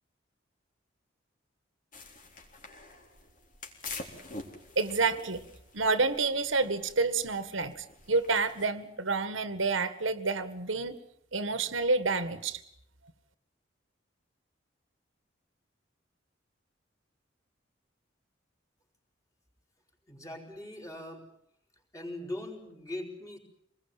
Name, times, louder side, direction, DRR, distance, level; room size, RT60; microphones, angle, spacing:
sound 1, 1.9-8.7, left 3 dB, 45° left, 3.9 m, -47 dB
voice 1, 4.8-5.5 5.7-11.0 11.3-12.6, right 3 dB, 80° right, 1.8 m, -29 dB
voice 2, 20.1-21.3 21.9-23.4, left 1 dB, 15° left, 4.7 m, -40 dB
26.0 x 20.5 x 9.1 m
head